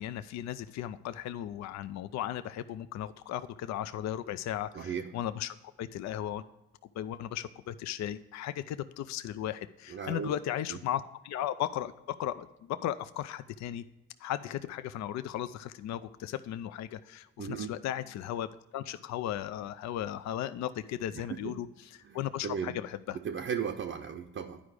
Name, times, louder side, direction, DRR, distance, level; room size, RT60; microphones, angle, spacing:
voice 1, 0.0-6.4 7.0-13.8 14.2-23.2, left 11 dB, 65° left, 13 dB, 0.4 m, -36 dB
voice 2, 4.7-5.1 9.9-10.3 10.7-10.8 17.4-17.8 21.3-21.6 22.0-22.7 23.1-24.6, right 7 dB, 45° right, 3 dB, 0.6 m, -36 dB
10.0 x 5.0 x 4.8 m, 0.98 s
cardioid pair, 90°, 30 cm